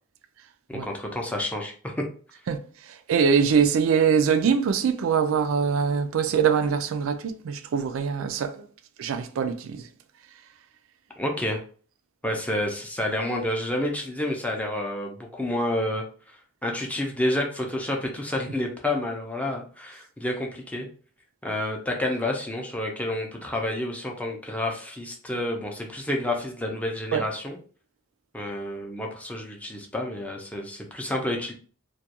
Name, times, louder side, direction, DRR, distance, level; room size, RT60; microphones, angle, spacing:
voice 1, 0.7-2.0 11.2-11.6 12.2-16.0 16.6-20.9 21.4-27.6 28.3-31.5, left 1 dB, 5° left, 0.5 m, -29 dB
voice 2, 2.5-8.6 9.0-9.9 27.1-27.3, right 6 dB, 75° right, 0.3 m, -23 dB
2.3 x 2.2 x 2.7 m
head